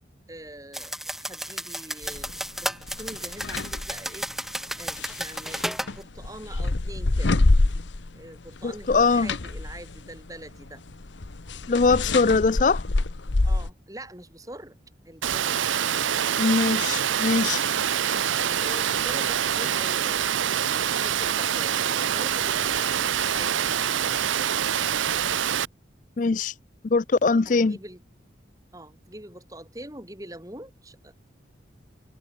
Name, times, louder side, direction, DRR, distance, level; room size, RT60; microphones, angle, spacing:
voice 1, 0.3-0.9 1.3-2.3 2.6-4.3 4.7-7.4 8.1-10.8 13.4-14.8 15.0-15.6 18.0-24.9 27.4-28.0 28.7-31.1, right 1 dB, 20° right, 4.9 m, -44 dB
sound 1, 0.7-5.9, right 1 dB, ahead, 1.2 m, -33 dB
sound 2, 2.0-2.3 2.8-4.0 4.9-8.2 8.5-13.7, left 2 dB, 75° left, 1.0 m, -26 dB
voice 2, 8.6-9.3 11.7-12.8 16.4-17.6 26.2-26.5 26.8-27.8, left 4 dB, 40° left, 0.4 m, -22 dB
Water, 15.2-25.7, right 9 dB, 90° right, 0.7 m, -25 dB
head